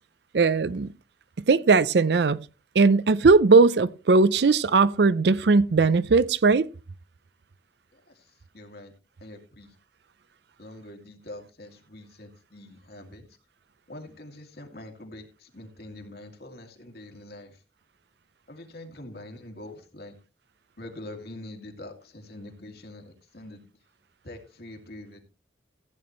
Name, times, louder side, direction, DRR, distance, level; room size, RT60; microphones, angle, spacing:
voice 1, 0.3-0.9 1.5-2.4 2.8-6.7, right 4 dB, 65° right, 0.5 m, -19 dB
voice 2, 7.9-8.9 9.2-9.8 10.6-13.3 13.9-17.6 18.5-20.2 20.8-23.6 24.2-25.2, left 1 dB, 60° left, 2.3 m, -44 dB
15.0 x 8.8 x 3.1 m
head